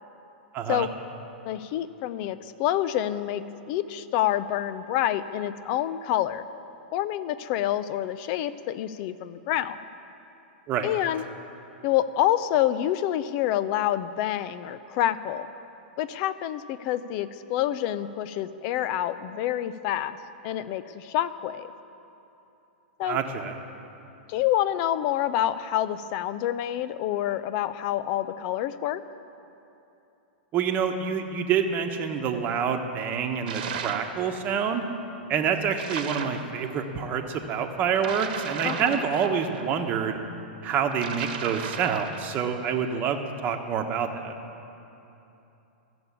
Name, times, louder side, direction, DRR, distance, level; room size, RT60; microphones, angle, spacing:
voice 1, 0.5-0.9 10.7-10.9 23.0-23.6 30.5-34.8 35.3-40.2 40.6-44.3, right 7 dB, 35° right, 4 dB, 1.1 m, -27 dB
voice 2, 1.4-6.4 6.9-9.8 10.8-11.2 11.8-15.5 16.0-20.2 20.4-21.7 23.0-23.2 24.3-29.0 38.6-39.0, left 12 dB, 50° left, 14 dB, 0.5 m, -27 dB
sound 1, 33.5-34.2 35.8-36.4 38.0-39.7 40.9-42.3, right 7 dB, 60° right, 1.1 m, -35 dB
14.0 x 7.0 x 8.3 m, 2.9 s
hypercardioid pair, 120°, 6 cm